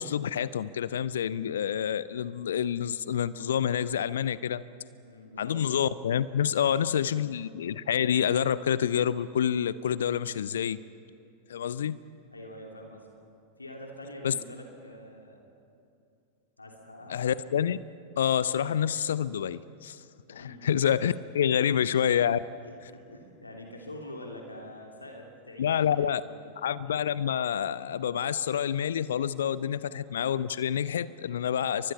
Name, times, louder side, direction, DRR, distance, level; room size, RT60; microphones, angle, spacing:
voice 1, 0.0-4.6 5.4-10.8 11.5-12.0 14.2-14.3 17.1-17.8 18.2-20.0 20.3-22.4 25.6-26.2 26.6-31.9, left 9 dB, 65° left, 18 dB, 0.6 m, -28 dB
voice 2, 5.0-5.6 6.6-7.0 12.3-13.1 13.6-15.5 16.6-17.2 20.3-20.7 21.4-21.7 22.6-26.6 29.8-29.9, left 1 dB, 80° left, 1 dB, 2.9 m, -45 dB
30.0 x 24.0 x 5.7 m, 2.6 s
figure-of-eight pair, 90°, 0 cm